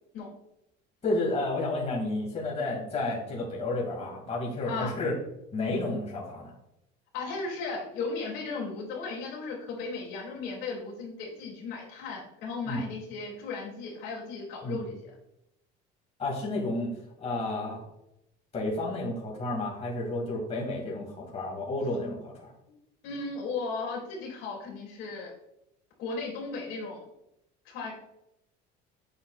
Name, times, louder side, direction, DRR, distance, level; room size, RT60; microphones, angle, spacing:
voice 1, 1.0-5.1 5.5-6.5 12.7-12.8 14.6-14.8 16.2-16.9 17.2-17.8 18.5-22.5, left 2 dB, 30° left, -3 dB, 2.3 m, -31 dB
voice 2, 7.1-15.1 22.7-22.8 23.0-25.3 26.0-27.1 27.6-27.9, left 4 dB, 75° left, -2 dB, 2.6 m, -36 dB
7.9 x 6.2 x 2.4 m, 0.82 s
cardioid pair, 110°, 20 cm